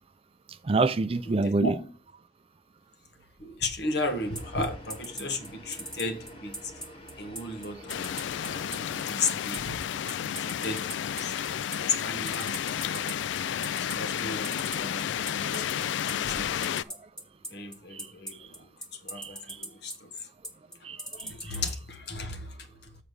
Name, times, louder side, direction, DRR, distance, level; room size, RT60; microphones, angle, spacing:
voice 1, 0.6-1.6 15.4-15.6 16.9-17.0 17.9-18.1 19.1-19.6 20.8-21.6, right 3 dB, 30° right, 0.4 m, -28 dB
voice 2, 1.3-1.7 3.4-6.7 7.2-8.1 8.4-9.8 10.0-11.3 11.8-13.2 13.7-15.9 16.1-16.6 17.5-18.7 19.0-20.3 21.2-22.6 22.8-22.9, left 2 dB, 60° left, 1.3 m, -35 dB
sound 1, 4.0-9.0, left 1 dB, 30° left, 1.9 m, -48 dB
sound 2, 4.4-21.7, right 1 dB, 5° left, 1.0 m, -38 dB
sound 3, 7.9-16.8, left 9 dB, 80° left, 0.3 m, -32 dB
7.1 x 4.9 x 6.4 m
head